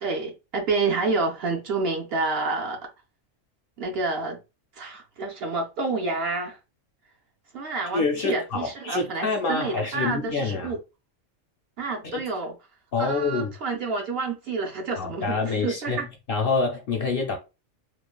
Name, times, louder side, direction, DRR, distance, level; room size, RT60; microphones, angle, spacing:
voice 1, 0.0-2.8 3.8-4.4 4.8-6.6 7.5-10.8 11.8-12.5 13.0-16.1, right 3 dB, 60° right, 0.8 m, -29 dB
voice 2, 7.9-10.7 12.1-12.2 12.9-13.5 15.0-17.4, left 4 dB, 60° left, 0.6 m, -26 dB
3.1 x 2.1 x 2.2 m
omnidirectional pair, 1.3 m